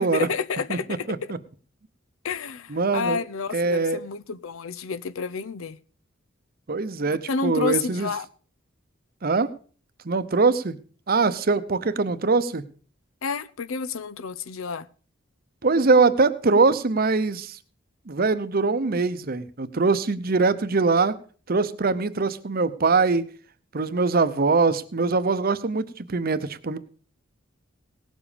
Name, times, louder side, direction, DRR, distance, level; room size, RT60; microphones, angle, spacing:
voice 1, 0.1-1.3 2.2-5.8 7.0-8.3 13.2-14.9, left 5 dB, 80° left, 0.6 m, -30 dB
voice 2, 2.7-3.2 3.5-4.0 6.7-8.1 9.2-9.5 10.0-10.8 11.1-12.6 15.6-17.6 18.1-21.1 21.5-23.3 23.7-26.8, right 4 dB, 45° right, 0.8 m, -22 dB
18.0 x 7.3 x 5.1 m
head